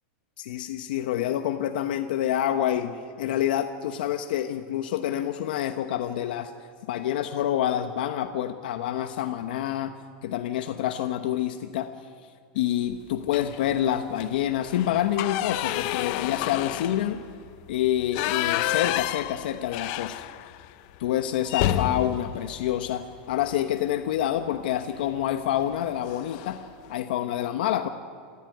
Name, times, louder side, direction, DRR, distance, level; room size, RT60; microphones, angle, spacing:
voice 1, 0.4-6.5 6.9-10.0 10.2-11.9 12.5-17.2 17.7-20.3 21.0-26.6 26.9-27.9, left 11 dB, 60° left, 7 dB, 1.0 m, -27 dB
sound 1, 13.3-13.7 14.1-14.2 14.6-20.7 21.0-21.1 21.5-23.6 25.0-25.2 25.6-25.8 26.0-26.7, left 14 dB, 35° left, 0.6 m, -30 dB
28.5 x 13.0 x 9.2 m, 2.1 s
supercardioid pair, 180°, 6 cm